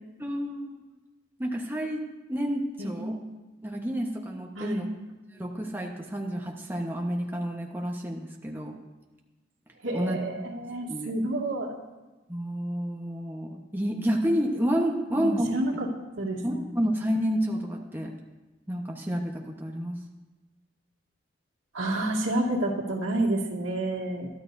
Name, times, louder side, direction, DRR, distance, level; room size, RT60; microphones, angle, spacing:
voice 1, 0.2-0.8 1.4-2.0 2.3-3.2 3.6-4.9 5.3-8.7 9.9-10.5 10.9-11.1 12.3-15.5 16.4-18.1 18.7-20.0, equal, 10° right, 0 dB, 1.1 m, -30 dB
voice 2, 2.8-3.2 4.6-4.8 9.8-11.8 15.1-15.9 16.2-16.6 21.7-24.3, right 1 dB, 85° right, 0 dB, 2.2 m, -29 dB
22.5 x 13.0 x 2.7 m, 1.1 s
head